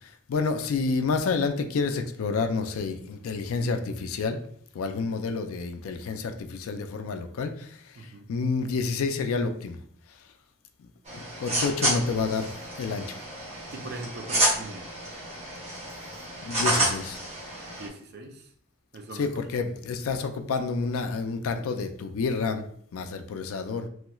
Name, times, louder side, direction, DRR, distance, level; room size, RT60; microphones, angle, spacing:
voice 1, 0.0-4.4 4.7-9.8 10.8-10.9 11.1-13.2 16.4-17.2 19.2-22.6 22.9-23.9, left 4 dB, 70° left, 7 dB, 0.3 m, -29 dB
voice 2, 8.0-8.3 13.7-15.0 17.8-18.5 18.9-19.4, right 2 dB, 45° right, 4 dB, 0.4 m, -41 dB
sound 1, 11.1-17.9, right 1 dB, 30° right, 0.8 m, -30 dB
3.0 x 3.0 x 2.3 m, 0.62 s
head